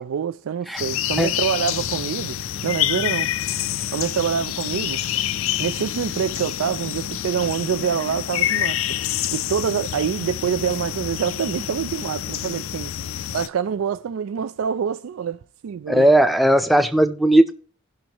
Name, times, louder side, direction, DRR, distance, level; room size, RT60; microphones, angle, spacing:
voice 1, 0.0-2.4 2.6-3.3 3.9-5.0 5.6-9.0 9.3-12.9 13.3-16.1, right 7 dB, 85° right, 0.3 m, -26 dB
sound 1, 0.8-13.5, left 11 dB, 80° left, 0.4 m, -27 dB
voice 2, 15.9-17.5, right 1 dB, ahead, 0.5 m, -16 dB
17.5 x 6.2 x 2.9 m
head